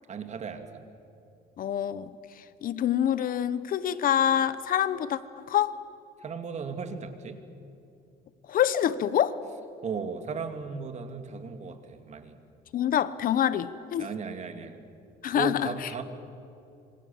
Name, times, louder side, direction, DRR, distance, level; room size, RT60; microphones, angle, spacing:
voice 1, 0.1-0.8 6.2-7.4 9.8-12.4 14.0-14.8 15.3-16.0, right 5 dB, 45° right, 7 dB, 2.6 m, -36 dB
voice 2, 1.6-5.8 8.5-9.4 12.7-14.1 15.2-15.9, left 10 dB, 55° left, 15 dB, 1.0 m, -26 dB
27.0 x 25.0 x 7.2 m, 2.6 s
cardioid pair, 110°, 17 cm